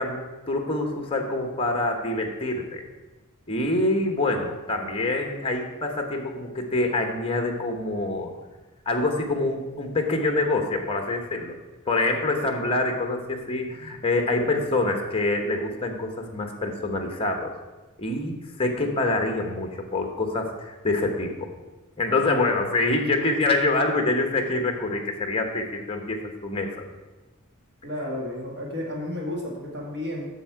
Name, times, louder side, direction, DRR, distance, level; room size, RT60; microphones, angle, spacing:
voice 1, 0.0-2.8 3.5-8.3 8.8-11.5 11.8-17.5 18.0-21.5 22.0-26.7, left 2 dB, 25° left, 4 dB, 1.1 m, -26 dB
voice 2, 27.8-30.3, left 1 dB, 50° right, -1 dB, 2.0 m, -32 dB
8.2 x 6.5 x 4.7 m, 1.2 s
head